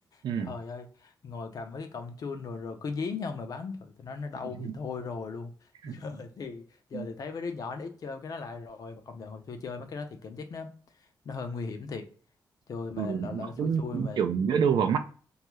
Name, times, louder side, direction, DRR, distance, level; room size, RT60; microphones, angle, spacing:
voice 1, 0.1-12.1 12.7-14.2, left 4 dB, 50° left, 0.5 m, -38 dB
voice 2, 13.0-15.0, right 7 dB, 75° right, 0.4 m, -28 dB
2.7 x 2.3 x 3.0 m
wide cardioid pair, 155°, 8 cm